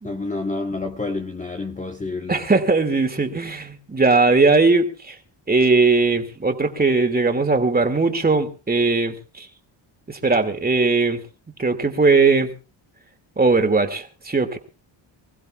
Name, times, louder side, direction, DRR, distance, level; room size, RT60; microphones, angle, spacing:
voice 1, 0.0-2.4, left 3 dB, 15° left, 1.2 m, -28 dB
voice 2, 2.3-5.1 5.5-9.5 10.1-11.2 11.6-12.5 13.4-14.6, right 3 dB, 20° right, 2.5 m, -19 dB
26.0 x 15.5 x 2.5 m
cardioid pair, 105°, 47 cm